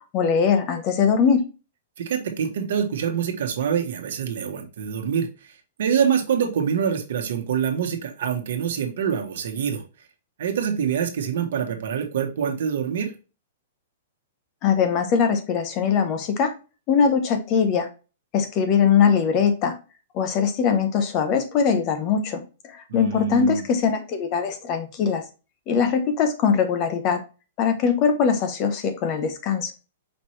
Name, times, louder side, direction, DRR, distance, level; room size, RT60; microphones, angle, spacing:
voice 1, 0.1-1.4 14.6-16.5 16.9-17.9 18.3-19.7 20.1-25.2 25.7-27.2 27.6-29.7, left 6 dB, 25° left, 7 dB, 0.6 m, -21 dB
voice 2, 2.0-5.5 5.8-9.8 10.4-13.1 22.9-23.6, right 7 dB, 60° right, 5 dB, 1.1 m, -25 dB
5.2 x 2.9 x 3.1 m, 0.31 s
hypercardioid pair, 175°, 0 cm